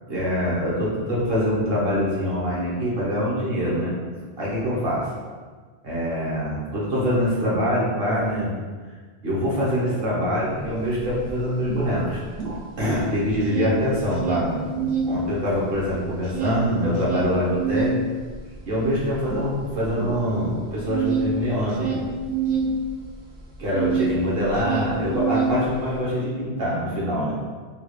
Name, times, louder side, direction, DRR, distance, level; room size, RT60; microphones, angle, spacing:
voice 1, 0.1-3.9 4.4-5.1 5.8-8.5 9.2-12.2 12.8-17.9 18.7-21.9 23.6-27.4, equal, 65° right, -7 dB, 1.2 m, -24 dB
sound 1, 10.6-10.7 11.0-13.0 13.3-15.1 15.5-24.2 24.4-26.0, right 6 dB, 80° right, 1.0 m, -27 dB
3.5 x 2.3 x 3.1 m, 1.5 s
omnidirectional pair, 1.1 m